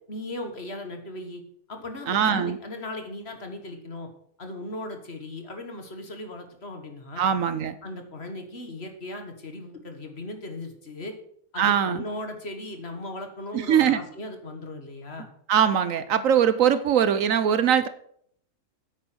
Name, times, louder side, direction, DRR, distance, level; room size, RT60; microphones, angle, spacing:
voice 1, 0.1-1.4 1.7-4.1 4.4-7.2 7.8-11.1 11.5-15.3, left 2 dB, 45° left, 5 dB, 1.9 m, -37 dB
voice 2, 2.1-2.6 7.2-7.8 11.6-12.0 13.5-14.0 15.5-17.9, right 8 dB, 70° right, 13 dB, 1.1 m, -21 dB
9.6 x 8.4 x 6.2 m, 0.65 s
omnidirectional pair, 1.5 m